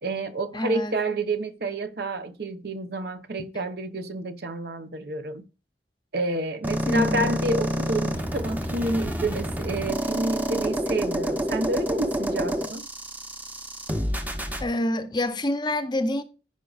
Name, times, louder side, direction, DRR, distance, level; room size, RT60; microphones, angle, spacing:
voice 1, 0.0-5.5 6.1-12.8, right 2 dB, 60° right, 0.8 m, -29 dB
voice 2, 0.5-1.0 6.9-7.3 14.6-16.2, left 1 dB, 25° left, 0.7 m, -27 dB
sound 1, 6.6-14.6, equal, 10° right, 0.8 m, -28 dB
14.5 x 5.1 x 2.4 m
head